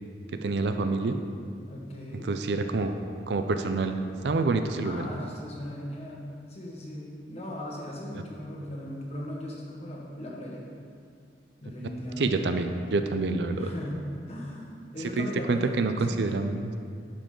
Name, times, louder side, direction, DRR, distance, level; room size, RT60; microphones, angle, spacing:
voice 1, 0.3-1.2 2.3-2.9 3.3-3.9 4.2-5.0 12.2-13.7 15.2-16.7, right 3 dB, 70° right, 7 dB, 0.5 m, -27 dB
voice 2, 1.7-2.3 4.8-10.7 11.6-12.5 13.6-16.5, left 1 dB, 35° left, -3 dB, 1.3 m, -38 dB
11.5 x 5.0 x 3.8 m, 2.2 s
head